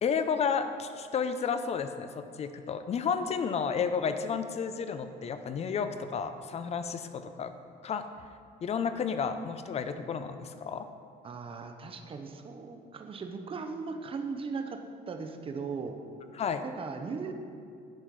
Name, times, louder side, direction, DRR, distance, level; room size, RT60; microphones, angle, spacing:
voice 1, 0.0-7.5 7.8-8.1 8.6-10.9 16.3-16.6, left 6 dB, 40° left, 10 dB, 0.5 m, -32 dB
voice 2, 11.2-14.8 15.1-16.0 16.6-17.3, right 5 dB, 30° right, 5 dB, 0.7 m, -38 dB
10.5 x 4.3 x 4.7 m, 2.4 s
cardioid pair, 110°, 17 cm